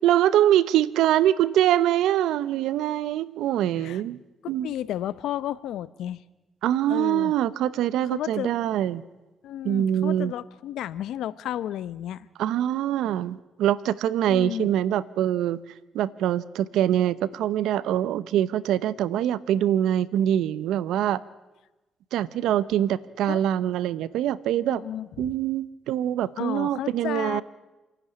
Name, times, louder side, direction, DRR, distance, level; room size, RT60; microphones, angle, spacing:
voice 1, 0.0-4.2 4.5-4.7 6.6-9.0 9.6-10.3 12.4-15.6 15.9-21.2 22.1-24.8 25.2-27.4, right 11 dB, 85° right, 19 dB, 0.8 m, -24 dB
voice 2, 4.6-6.2 6.9-7.3 8.1-8.5 9.4-12.3 14.2-14.7 23.3-23.4 24.7-25.3 26.4-27.4, left 11 dB, 80° left, 17 dB, 0.8 m, -32 dB
28.0 x 11.0 x 10.0 m, 1.1 s
cardioid pair, 90°, 0 cm